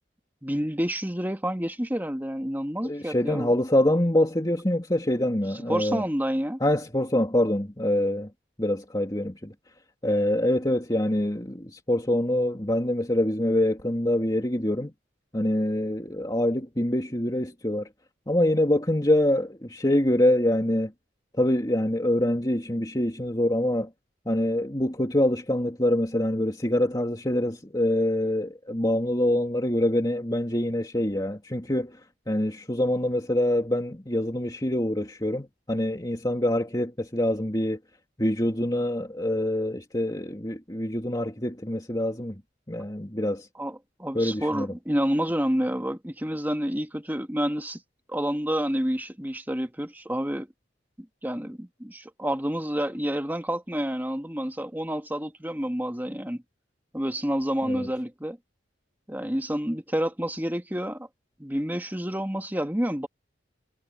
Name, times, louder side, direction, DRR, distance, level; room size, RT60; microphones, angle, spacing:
voice 1, 0.4-3.5 5.7-6.6 43.6-47.8 48.1-50.5 51.0-56.4 56.9-58.4 59.1-61.1 61.4-63.1, equal, 10° right, 1.8 m, -29 dB
voice 2, 2.8-6.0 6.6-8.3 8.6-9.5 10.0-14.9 15.3-17.9 18.3-20.9 21.3-23.9 24.3-32.0 32.3-37.8 38.2-42.4 42.7-43.5 44.1-44.7 57.6-57.9, left 1 dB, 20° left, 2.9 m, -25 dB
head